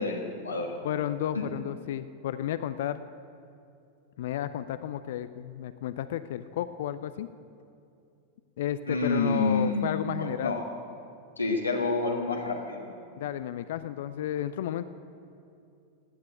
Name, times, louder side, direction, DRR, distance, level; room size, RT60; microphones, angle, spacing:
voice 1, 0.0-0.7 1.3-1.4 8.9-10.6 11.4-12.9, left 3 dB, 80° left, -1 dB, 1.6 m, -29 dB
voice 2, 0.8-3.0 4.2-7.3 8.6-10.6 13.2-14.8, left 11 dB, 55° left, 13 dB, 0.5 m, -32 dB
17.0 x 9.7 x 7.9 m, 2.6 s
figure-of-eight pair, 90°, 0 cm